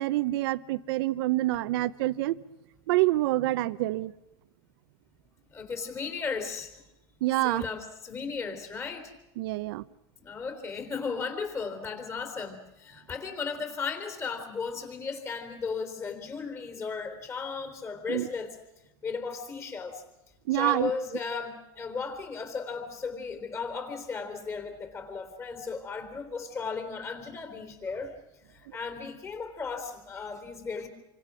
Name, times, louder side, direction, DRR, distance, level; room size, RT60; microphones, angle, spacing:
voice 1, 0.0-2.4 2.9-4.1 7.2-7.6 9.4-9.8 18.1-18.3 20.5-20.9, right 17 dB, 70° right, 16 dB, 0.8 m, -27 dB
voice 2, 5.5-6.7 7.4-9.1 10.2-18.6 19.0-20.0 20.5-28.1 28.5-30.9, left 5 dB, 20° left, 8 dB, 3.9 m, -35 dB
28.5 x 25.0 x 6.3 m, 0.92 s
supercardioid pair, 150°, 13 cm